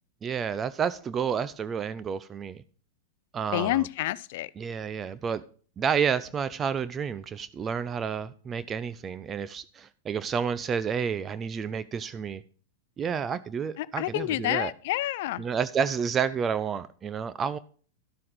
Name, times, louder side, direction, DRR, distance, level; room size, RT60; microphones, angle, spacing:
voice 1, 0.2-2.6 3.3-3.9 4.6-5.4 5.8-12.4 13.0-14.7 15.4-17.6, right 7 dB, 25° right, 0.5 m, -30 dB
voice 2, 3.5-4.5 13.8-15.4, left 16 dB, 60° left, 0.5 m, -28 dB
12.5 x 7.6 x 3.8 m
hypercardioid pair, 100°, 0 cm